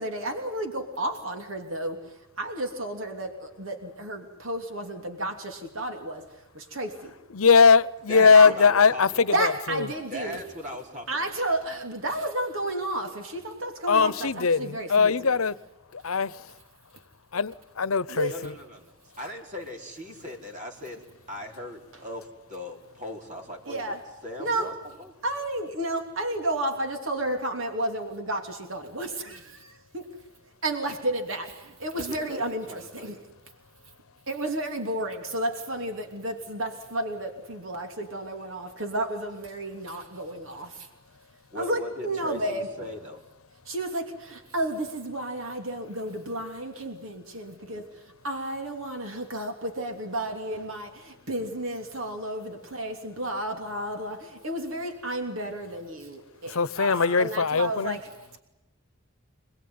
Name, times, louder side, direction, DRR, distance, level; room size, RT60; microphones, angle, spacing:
voice 1, 0.0-2.0 2.4-6.2 6.5-7.1 8.3-8.5 9.3-10.4 11.1-15.4 18.1-18.4 23.7-24.0 24.4-24.7 25.2-30.1 30.6-33.2 34.3-40.9 41.5-42.9 43.7-47.8 48.2-56.9 57.2-58.1, right 1 dB, 70° right, 3.1 m, -32 dB
voice 2, 7.3-9.9 13.9-15.6 15.9-16.5 17.3-18.5 56.5-58.0, left 5 dB, 90° left, 0.9 m, -21 dB
voice 3, 8.1-9.4 10.1-11.3 18.3-21.0 21.3-23.9 24.2-25.1 31.9-33.2 41.5-43.2 56.7-57.3, left 1 dB, 35° right, 4.8 m, -39 dB
27.0 x 20.5 x 9.6 m
head